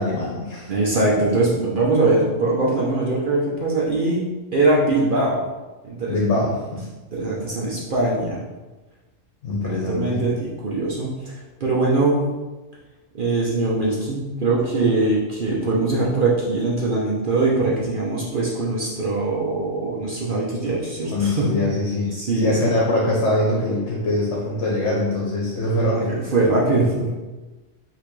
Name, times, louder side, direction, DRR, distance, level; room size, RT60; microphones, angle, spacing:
voice 1, 0.0-0.7 6.1-6.8 9.4-10.2 21.1-26.2, left 1 dB, 60° left, -4 dB, 1.1 m, -23 dB
voice 2, 0.7-4.2 4.5-5.4 5.8-6.2 7.1-8.4 9.5-11.3 11.6-12.3 13.1-21.5 22.1-22.7 25.9-26.0 26.3-27.1, right 2 dB, 45° right, -5 dB, 0.8 m, -22 dB
5.4 x 2.9 x 3.1 m, 1.2 s
omnidirectional pair, 1.4 m